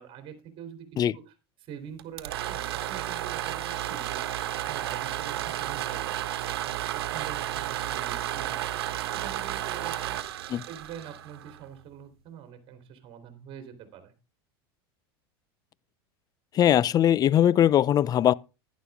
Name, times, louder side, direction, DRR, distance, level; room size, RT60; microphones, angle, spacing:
voice 1, 0.0-0.9 1.1-1.3 1.6-4.2 4.5-10.2 10.7-14.1, right 8 dB, 45° right, 3.2 m, -45 dB
sound 1, 2.0-11.8, right 13 dB, 80° right, 1.4 m, -32 dB
voice 2, 16.5-18.3, left 11 dB, 30° left, 0.4 m, -20 dB
11.5 x 10.5 x 3.5 m
supercardioid pair, 110°, 13 cm